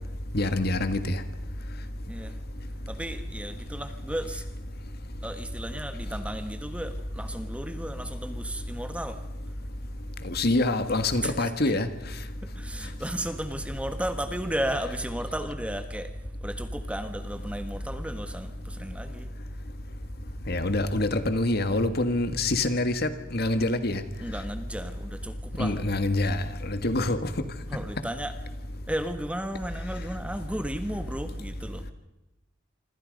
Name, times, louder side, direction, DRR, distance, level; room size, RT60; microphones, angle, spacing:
voice 1, 0.3-1.2 10.2-11.9 20.5-24.0 25.6-27.3, left 2 dB, 50° left, 1.8 m, -26 dB
voice 2, 2.1-2.4 2.9-4.5 5.2-9.2 11.2-11.5 12.4-16.1 16.4-19.3 24.2-25.8 27.7-28.4 28.9-31.9, right 1 dB, 5° right, 1.4 m, -34 dB
26.5 x 26.0 x 5.3 m
head